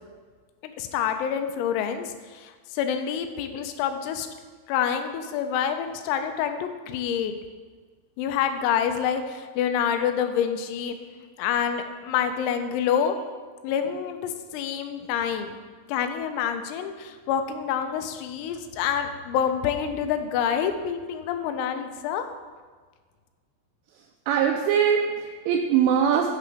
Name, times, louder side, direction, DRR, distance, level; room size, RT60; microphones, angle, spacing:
voice 1, 0.8-4.3 4.7-7.3 8.2-11.0 11.4-13.1 13.6-15.6 15.9-22.3, left 8 dB, 90° left, 7 dB, 3.4 m, -27 dB
voice 2, 24.3-26.3, right 8 dB, 85° right, 1 dB, 3.0 m, -22 dB
9.7 x 3.8 x 6.6 m, 1.5 s
omnidirectional pair, 5.9 m